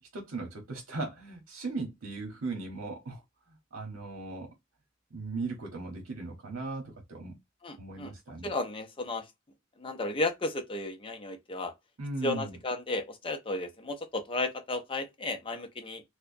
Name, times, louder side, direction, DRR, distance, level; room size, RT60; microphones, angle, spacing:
voice 1, 0.1-3.2 3.7-4.5 5.1-7.3 7.8-8.5 12.0-12.6, right 3 dB, 70° right, 1.0 m, -37 dB
voice 2, 7.6-8.1 8.4-9.3 9.8-11.7 12.2-16.0, left 2 dB, 25° left, 0.5 m, -34 dB
4.5 x 2.1 x 2.6 m
head